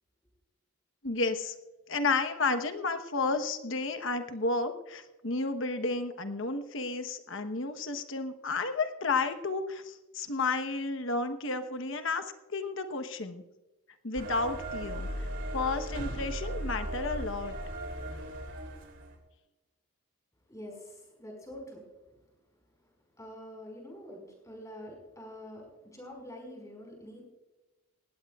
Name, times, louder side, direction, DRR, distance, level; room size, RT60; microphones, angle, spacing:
voice 1, 1.0-1.6 1.9-12.2 12.5-13.4 14.0-15.3 15.5-17.5, left 3 dB, 65° left, 8 dB, 1.1 m, -32 dB
sound 1, 14.2-19.2, right 1 dB, 60° right, 2.8 m, -37 dB
voice 2, 20.5-21.9 23.2-27.2, equal, 15° left, 0 dB, 5.0 m, -46 dB
18.5 x 16.0 x 2.4 m, 1.1 s
head